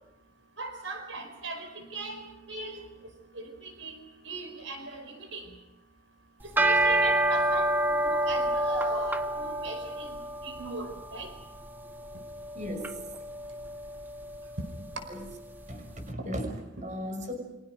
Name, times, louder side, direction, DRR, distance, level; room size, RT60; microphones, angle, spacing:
voice 1, 0.6-2.8 3.3-4.0 4.2-5.5 6.4-10.2 10.4-11.3, right 3 dB, 80° right, 6 dB, 4.9 m, -39 dB
sound 1, 6.4-15.8, right 1 dB, 10° right, 0.9 m, -29 dB
voice 2, 12.5-13.0 15.1-15.2 15.7-17.3, equal, 40° right, 4 dB, 6.0 m, -36 dB
29.5 x 26.5 x 5.2 m, 0.94 s
head